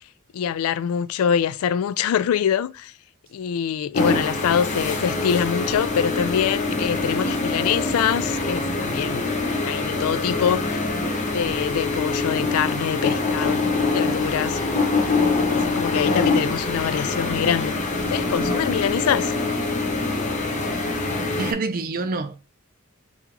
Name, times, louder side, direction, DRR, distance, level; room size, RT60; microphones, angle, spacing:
voice 1, 0.3-2.9 3.3-9.3 9.6-10.9 11.3-13.6 13.9-14.6 15.4-17.7 18.1-19.3, left 8 dB, 80° left, 0.3 m, -24 dB
sound 1, 3.9-21.5, left 3 dB, 35° left, 0.7 m, -24 dB
voice 2, 21.4-22.4, right 3 dB, 40° right, 0.4 m, -27 dB
5.5 x 2.3 x 2.9 m
head